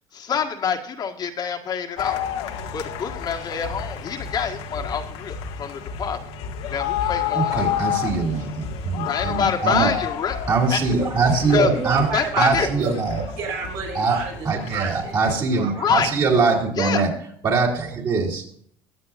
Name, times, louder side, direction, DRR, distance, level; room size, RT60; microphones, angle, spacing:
voice 1, 0.1-2.3 2.7-6.2 6.7-7.6 9.0-10.4 10.7-10.8 11.5-11.7 12.1-12.7 15.8-16.1 16.8-17.0, left 7 dB, 40° left, 3 dB, 1.7 m, -26 dB
sound 1, 2.0-15.4, left 8 dB, 75° left, 1.7 m, -30 dB
voice 2, 7.3-9.9 10.5-12.1 12.4-13.2 14.0-14.2 14.4-17.1 17.4-18.4, right 4 dB, 40° right, -2 dB, 3.6 m, -22 dB
voice 3, 11.7-12.9 13.4-15.9 16.8-17.0, right 6 dB, 65° right, -3 dB, 5.9 m, -32 dB
22.0 x 7.9 x 2.6 m, 0.63 s
cardioid pair, 125°, 11 cm